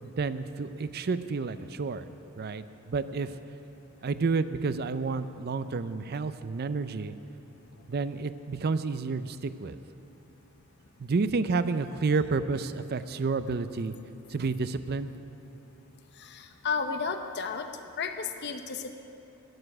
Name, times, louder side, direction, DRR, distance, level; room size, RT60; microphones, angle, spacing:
voice 1, 0.0-2.1 2.4-3.4 4.0-7.2 7.9-9.8 11.0-13.9 14.3-15.2, right 4 dB, 45° right, 13 dB, 0.5 m, -30 dB
voice 2, 16.2-17.7 18.0-18.9, left 5 dB, 50° left, 7 dB, 0.8 m, -33 dB
13.0 x 6.9 x 10.0 m, 2.9 s
head